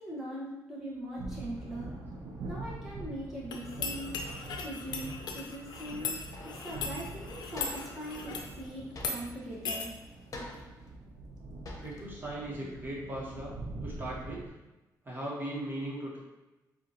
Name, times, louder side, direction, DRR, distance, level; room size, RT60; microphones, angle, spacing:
voice 1, 0.0-1.9 2.5-4.1 4.6-9.9, right 1 dB, 5° right, -8 dB, 1.3 m, -41 dB
sound 1, 1.2-14.5, right 2 dB, 85° right, 0.7 m, -44 dB
sound 2, 3.5-8.5 9.0-9.2 9.7-9.9, left 4 dB, 80° left, 0.6 m, -38 dB
sound 3, 6.1-6.7 7.0-7.1 7.5-8.0 8.9-9.6 10.3-10.9 11.4-11.5 11.6-12.1, left 1 dB, 50° left, 0.9 m, -45 dB
voice 2, 11.8-13.5 13.8-14.5 15.0-16.2, right 1 dB, 30° right, -5 dB, 1.5 m, -38 dB
7.2 x 2.5 x 2.9 m, 1.0 s
cardioid pair, 90°, 7 cm